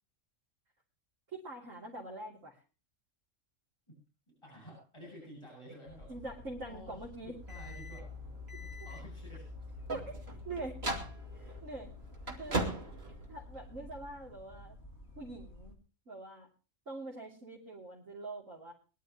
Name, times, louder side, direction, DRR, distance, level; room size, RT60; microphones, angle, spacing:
voice 1, 1.3-2.6 6.1-7.4 9.9-10.1 10.5-10.8 11.3-11.9 12.4-12.6 13.3-14.8 15.2-15.8 16.1-16.5 16.9-18.7, right 2 dB, 80° right, -4 dB, 3.7 m, -44 dB
voice 2, 4.3-6.2 6.7-8.2 8.6-9.7 12.3-13.0, equal, 20° left, -2 dB, 7.7 m, -52 dB
sound 1, 5.9-15.7, left 1 dB, 55° left, 3.3 m, -53 dB
sound 2, 7.4-13.9, right 1 dB, 55° right, 3.0 m, -40 dB
22.5 x 12.0 x 3.0 m, 0.35 s
omnidirectional pair, 1.3 m